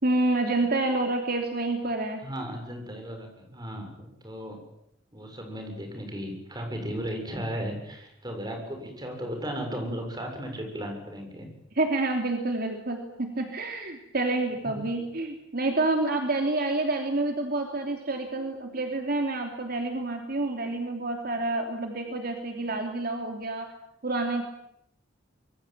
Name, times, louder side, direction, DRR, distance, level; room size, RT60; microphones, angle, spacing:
voice 1, 0.0-2.2 6.3-6.4 11.7-23.7 24.0-24.5, right 2 dB, 55° right, 4 dB, 3.1 m, -28 dB
voice 2, 2.2-4.6 5.1-11.5 14.6-14.8, equal, 20° right, 4 dB, 7.3 m, -35 dB
26.5 x 22.5 x 9.1 m, 0.78 s
head